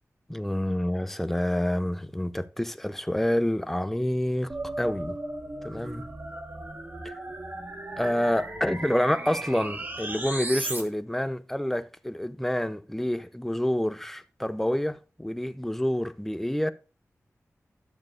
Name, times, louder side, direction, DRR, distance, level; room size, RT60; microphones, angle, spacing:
voice 1, 0.3-5.2 5.6-6.1 8.0-16.7, left 1 dB, 5° left, 0.5 m, -28 dB
sound 1, 4.5-10.8, right 2 dB, 35° right, 1.3 m, -36 dB
12.0 x 7.0 x 2.4 m
wide cardioid pair, 115°, 5 cm